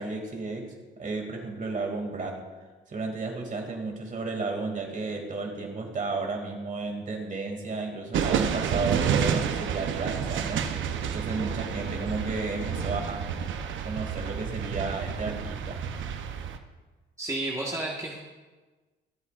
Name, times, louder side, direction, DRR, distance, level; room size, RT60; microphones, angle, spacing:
voice 1, 0.0-2.4 2.9-10.7 11.1-13.2 13.8-15.8, right 3 dB, 40° right, 2 dB, 2.6 m, -33 dB
sound 1, 8.1-16.6, right 7 dB, 75° right, 0.9 m, -30 dB
voice 2, 17.2-18.2, right 2 dB, 15° right, -2 dB, 1.6 m, -31 dB
24.0 x 8.3 x 2.5 m, 1.3 s
cardioid pair, 90°, 20 cm